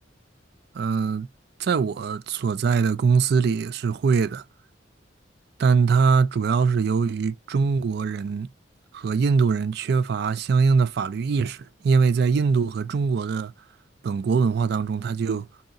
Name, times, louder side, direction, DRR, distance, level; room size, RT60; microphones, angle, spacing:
voice 1, 0.7-1.3 1.6-4.4 5.6-8.5 8.9-13.5 14.0-15.5, right 5 dB, 55° right, 0.3 m, -22 dB
5.5 x 2.8 x 2.5 m
head